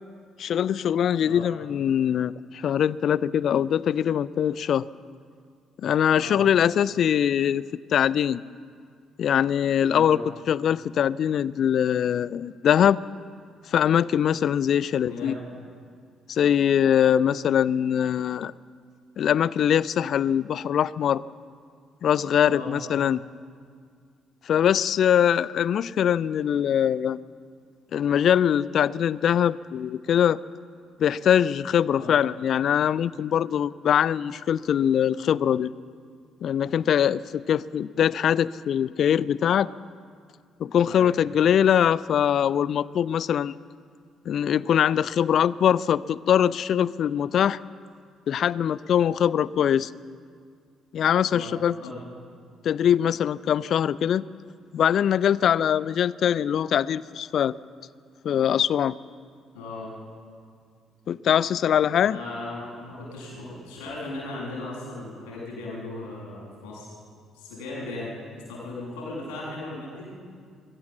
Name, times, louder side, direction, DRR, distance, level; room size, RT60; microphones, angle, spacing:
voice 1, 0.4-4.9 5.8-7.6 7.9-8.4 9.2-10.2 10.5-13.0 13.7-15.4 16.3-18.5 19.2-21.2 22.0-23.2 24.5-27.2 27.9-30.4 31.0-35.7 36.4-39.7 40.6-43.5 44.3-47.6 48.3-49.9 50.9-51.8 52.6-54.2 54.7-57.6 58.2-59.0 61.1-62.2, left 9 dB, 50° left, 21 dB, 0.4 m, -22 dB
voice 2, 9.9-10.2 14.9-15.4 22.4-22.7 31.9-32.1 40.8-41.1 51.3-52.0 59.5-59.9 62.0-66.9 67.3-68.1 68.5-70.1, left 2 dB, 65° left, -4 dB, 7.5 m, -37 dB
22.5 x 15.5 x 7.5 m, 2.1 s
figure-of-eight pair, 45°, 0 cm